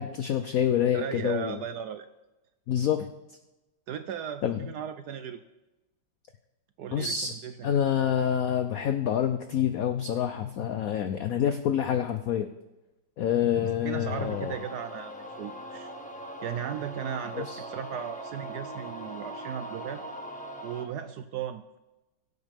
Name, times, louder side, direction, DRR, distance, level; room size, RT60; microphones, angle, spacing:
voice 1, 0.0-1.6 2.7-3.1 4.4-4.6 6.9-7.3 7.6-12.5 13.2-14.6 17.3-17.6, left 9 dB, 90° left, 9 dB, 0.7 m, -27 dB
voice 2, 0.9-2.1 3.9-5.4 6.8-7.8 13.6-15.9 16.4-20.0 20.6-21.8, right 8 dB, 70° right, 10 dB, 1.0 m, -36 dB
sound 1, 14.1-20.8, right 1 dB, 5° left, 0.9 m, -41 dB
21.5 x 8.1 x 3.5 m, 1.0 s
omnidirectional pair, 2.2 m